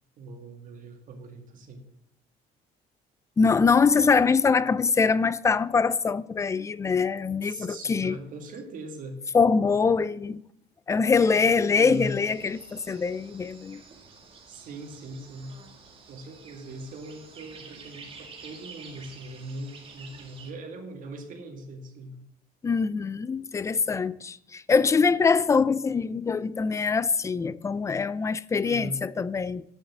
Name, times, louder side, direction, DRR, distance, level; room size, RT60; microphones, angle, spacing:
voice 1, 0.2-1.8 7.4-9.2 11.7-12.2 14.5-15.6 16.1-22.2 28.6-29.0, right 2 dB, 50° right, 2.1 m, -40 dB
voice 2, 3.4-8.2 9.3-10.4 10.9-13.8 22.6-29.6, left 5 dB, 15° left, 0.4 m, -23 dB
sound 1, 11.2-20.5, right 4 dB, 35° right, 2.0 m, -49 dB
8.7 x 6.5 x 7.4 m
cardioid pair, 145°, 17 cm